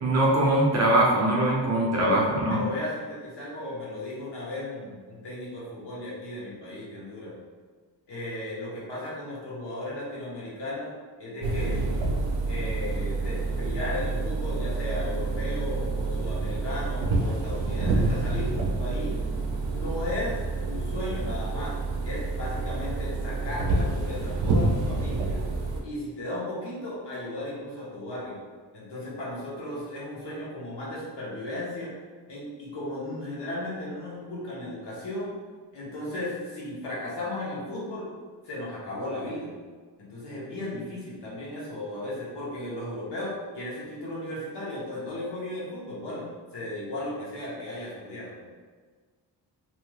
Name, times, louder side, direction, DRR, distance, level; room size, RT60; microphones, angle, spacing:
voice 1, 0.0-2.6, right 1 dB, 40° right, -3 dB, 0.5 m, -22 dB
voice 2, 2.0-7.3 8.1-10.9 11.2-11.9 12.5-19.2 19.7-21.8 22.0-25.5 25.8-28.4 28.7-31.9 32.3-35.3 35.7-38.1 38.4-39.5 40.0-46.3 46.5-48.5, left 1 dB, 70° left, -6 dB, 1.1 m, -35 dB
sound 1, 11.4-25.8, right 3 dB, 85° right, 0.5 m, -28 dB
3.0 x 2.7 x 2.3 m, 1.5 s
wide cardioid pair, 135°, 43 cm